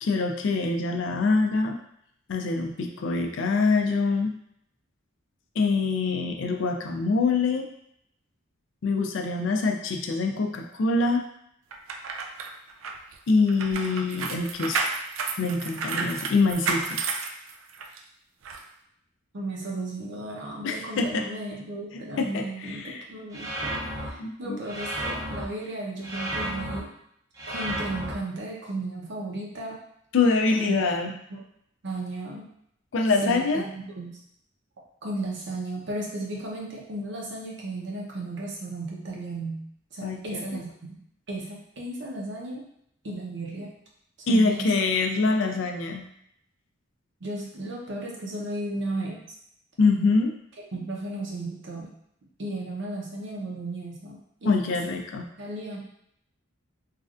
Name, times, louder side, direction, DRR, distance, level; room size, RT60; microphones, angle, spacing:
voice 1, 0.0-1.8 2.3-4.3 5.6-7.7 8.8-11.2 13.3-14.8 15.4-17.1 20.6-21.3 21.9-23.0 24.2-24.6 30.1-31.1 32.9-33.7 40.0-40.6 44.3-46.1 49.8-50.3 54.4-55.3, left 3 dB, 65° left, 4 dB, 0.4 m, -25 dB
sound 1, 11.7-18.0 18.4-18.6, right 4 dB, 75° right, 0.3 m, -31 dB
voice 2, 19.3-26.9 27.5-29.8 30.6-31.4 31.8-32.5 33.2-34.2 35.0-39.7 39.9-40.7 41.3-42.7 43.0-43.7 44.2-44.7 45.5-45.6 47.2-49.2 50.7-51.9 52.4-55.0 55.4-55.8, right 2 dB, 60° right, -3 dB, 0.7 m, -35 dB
sound 2, 23.3-24.1 24.7-25.5 26.0-26.8 27.4-28.1, right 1 dB, 15° right, 0.5 m, -32 dB
3.2 x 2.4 x 2.4 m, 0.72 s
head